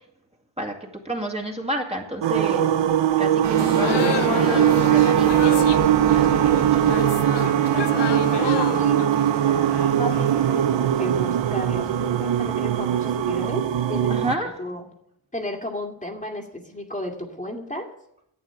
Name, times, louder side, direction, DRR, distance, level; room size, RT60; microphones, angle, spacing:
voice 1, 0.6-2.7 3.2-5.4 6.1-7.2 14.1-14.6, right 1 dB, 15° right, 0 dB, 2.3 m, -31 dB
sound 1, 2.2-14.3, right 10 dB, 80° right, 0.8 m, -21 dB
sound 2, 3.4-13.5, right 8 dB, 40° right, 0.6 m, -30 dB
sound 3, 3.5-10.5, left 10 dB, 65° left, 0.7 m, -30 dB
voice 2, 8.4-9.0 9.9-13.6 13.9-14.9 15.3-17.9, left 1 dB, 15° left, 1 dB, 2.2 m, -33 dB
11.5 x 8.3 x 8.8 m, 0.77 s
cardioid pair, 75°, 44 cm